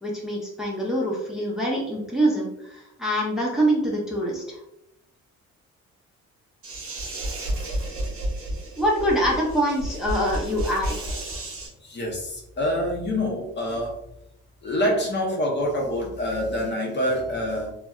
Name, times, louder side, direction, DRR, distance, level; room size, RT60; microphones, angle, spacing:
voice 1, 0.0-4.6 8.8-11.0, right 1 dB, ahead, -4 dB, 0.6 m, -25 dB
sound 1, 6.6-11.7, right 1 dB, 45° right, 0.8 m, -31 dB
voice 2, 11.8-14.0 14.6-17.7, equal, 35° left, -1 dB, 0.7 m, -26 dB
2.6 x 2.1 x 2.3 m, 0.82 s
cardioid pair, 90°, 30 cm